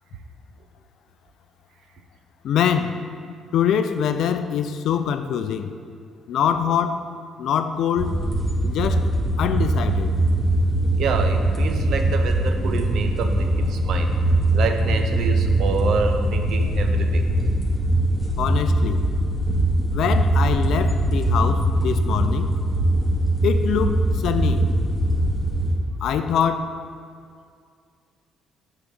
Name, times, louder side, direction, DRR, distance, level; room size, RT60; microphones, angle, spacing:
voice 1, 2.4-3.1 3.5-5.8 6.3-7.0 7.4-8.2 8.6-9.1 9.4-10.2 18.4-19.1 19.9-22.5 23.4-24.7 26.0-26.7, left 8 dB, 65° left, 9 dB, 0.4 m, -24 dB
sound 1, 8.0-25.7, right 1 dB, 5° right, 1.9 m, -21 dB
voice 2, 11.0-14.1 14.5-17.3, right 4 dB, 65° right, 6 dB, 0.6 m, -27 dB
6.7 x 4.0 x 6.3 m, 2.2 s
hypercardioid pair, 50°, 0 cm